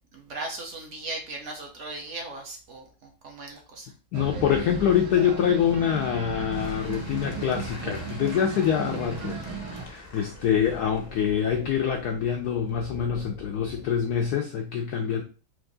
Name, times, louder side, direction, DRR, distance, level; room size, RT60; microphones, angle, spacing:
voice 1, 0.1-3.9, right 2 dB, 60° right, 0.8 m, -37 dB
voice 2, 4.1-9.4 9.7-15.2, left 8 dB, 80° left, 0.8 m, -25 dB
sound 1, 4.1-9.9, right 6 dB, 85° right, 1.8 m, -36 dB
sound 2, 4.2-14.3, equal, 15° left, 0.5 m, -45 dB
Applause / Crowd, 6.5-12.8, left 3 dB, 60° left, 0.5 m, -47 dB
4.6 x 2.6 x 3.9 m
omnidirectional pair, 2.2 m